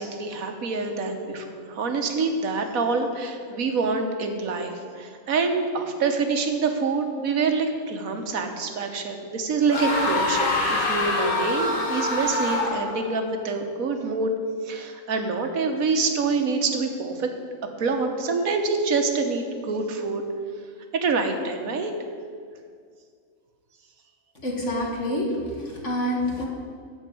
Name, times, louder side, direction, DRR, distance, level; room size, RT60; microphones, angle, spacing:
voice 1, 0.0-14.3 14.6-17.3 17.8-20.2 20.9-21.9, right 4 dB, 70° right, 5 dB, 1.5 m, -26 dB
sound 1, 9.7-13.1, left 2 dB, 40° left, 1.5 m, -25 dB
voice 2, 24.4-26.4, left 1 dB, 55° left, -2 dB, 2.0 m, -27 dB
13.0 x 4.6 x 8.4 m, 2.1 s
omnidirectional pair, 1.5 m